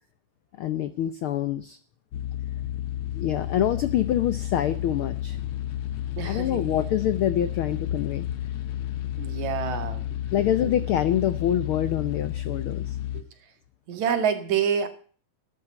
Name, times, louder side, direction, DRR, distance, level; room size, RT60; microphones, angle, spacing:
voice 1, 0.6-1.8 3.1-5.4 6.2-8.3 10.3-13.0, left 11 dB, 90° left, 1.1 m, -26 dB
sound 1, 2.1-13.2, left 12 dB, 60° left, 1.6 m, -31 dB
voice 2, 6.2-6.9 9.2-10.0 10.6-10.7 13.1-13.2 13.9-14.9, right 7 dB, 70° right, 3.1 m, -27 dB
13.5 x 9.6 x 8.8 m
omnidirectional pair, 3.4 m